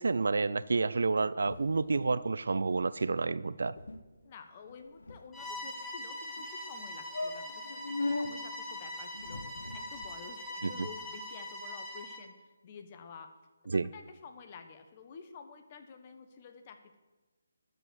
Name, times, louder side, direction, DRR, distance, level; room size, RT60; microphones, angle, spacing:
voice 1, 0.0-3.7 10.6-10.9 13.7-13.9, right 4 dB, 70° right, 17 dB, 0.4 m, -29 dB
sound 1, 1.4-2.3 2.5-2.7 3.0-3.2 3.5-3.6 3.8-4.0 4.6-5.7 6.4-6.5 6.8-6.9 7.1-8.3 9.1-10.2, left 2 dB, 75° left, 1.0 m, -39 dB
voice 2, 4.2-9.4 9.7-12.4 12.6-13.3 13.6-17.0, left 5 dB, 35° left, 7 dB, 1.2 m, -50 dB
Bowed string instrument, 5.3-12.3, left 1 dB, 5° left, 1.6 m, -42 dB
12.0 x 5.4 x 8.0 m, 1.2 s
figure-of-eight pair, 150°, 0 cm